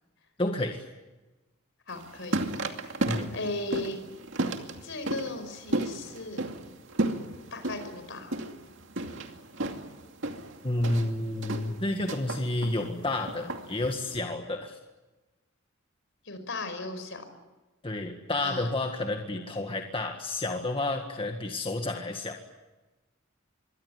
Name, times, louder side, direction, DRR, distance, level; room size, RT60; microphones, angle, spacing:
voice 1, 0.4-0.8 3.1-3.3 10.6-14.8 17.8-22.4, left 2 dB, 25° left, 4 dB, 1.8 m, -30 dB
voice 2, 1.9-2.4 3.3-4.0 4.8-6.4 7.5-8.4 16.3-17.3 18.4-18.7 19.6-19.8, left 2 dB, 65° left, 9 dB, 5.4 m, -36 dB
sound 1, 1.9-14.2, right 2 dB, 65° right, 2.5 m, -34 dB
25.5 x 23.0 x 9.6 m, 1.1 s
head